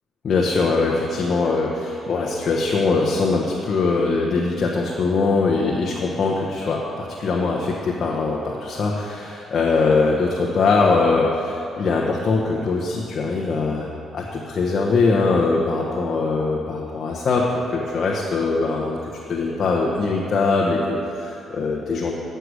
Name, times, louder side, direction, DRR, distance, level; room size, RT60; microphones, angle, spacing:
voice 1, 0.2-22.1, left 3 dB, 50° left, -2 dB, 1.1 m, -22 dB
9.4 x 6.8 x 6.4 m, 2.8 s
cardioid pair, 90°, 0 cm